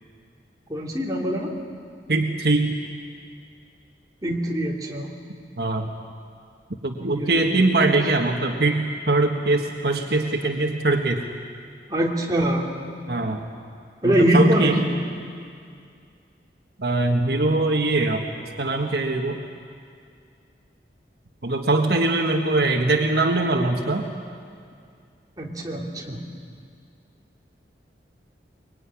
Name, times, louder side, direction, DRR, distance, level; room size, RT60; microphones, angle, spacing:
voice 1, 0.7-1.6 4.2-5.1 6.9-7.6 11.9-12.6 14.0-15.0 25.4-26.2, right 1 dB, 20° right, -2 dB, 3.0 m, -23 dB
voice 2, 2.1-2.7 5.6-5.9 6.8-11.2 13.1-13.4 14.0-14.8 16.8-18.2 18.6-19.4 21.4-24.1, right 2 dB, 65° right, 3 dB, 1.6 m, -22 dB
23.5 x 22.5 x 9.9 m, 2.3 s
head